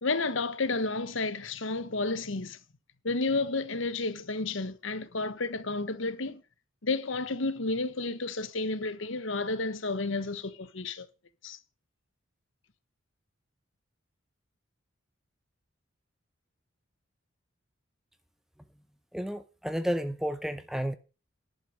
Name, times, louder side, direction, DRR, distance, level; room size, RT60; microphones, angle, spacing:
voice 1, 0.0-2.6 3.0-6.4 6.8-11.1 11.4-11.6, left 3 dB, 70° left, 1.2 m, -31 dB
voice 2, 19.1-20.9, equal, ahead, 0.7 m, -31 dB
11.0 x 6.6 x 6.4 m
head